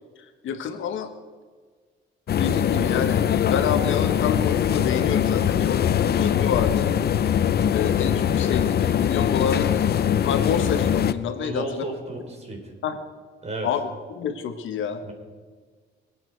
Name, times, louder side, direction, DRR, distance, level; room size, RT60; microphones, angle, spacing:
voice 1, 0.4-1.1 2.3-6.9 7.7-9.9 10.2-11.9 12.8-13.0 13.6-15.0, left 7 dB, 75° left, 7 dB, 1.4 m, -28 dB
sound 1, 2.3-11.1, left 9 dB, 55° left, 0.7 m, -22 dB
voice 2, 11.2-12.7 13.4-13.7 15.0-15.1, right 2 dB, 35° right, 2 dB, 3.9 m, -33 dB
24.5 x 8.8 x 4.6 m, 1.5 s
cardioid pair, 90°, 20 cm